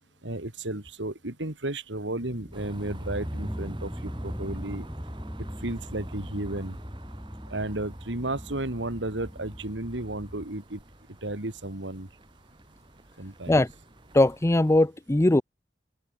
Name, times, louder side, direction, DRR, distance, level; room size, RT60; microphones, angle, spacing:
voice 1, 0.2-4.9 5.6-6.7 7.5-10.8 11.2-12.1 13.2-13.5, right 2 dB, 85° right, 2.7 m, -33 dB
sound 1, 2.2-10.4, equal, 5° right, 2.0 m, -39 dB
sound 2, 2.5-14.9, right 1 dB, 30° right, 4.8 m, -49 dB
voice 2, 14.1-15.4, left 1 dB, 15° left, 0.6 m, -20 dB
head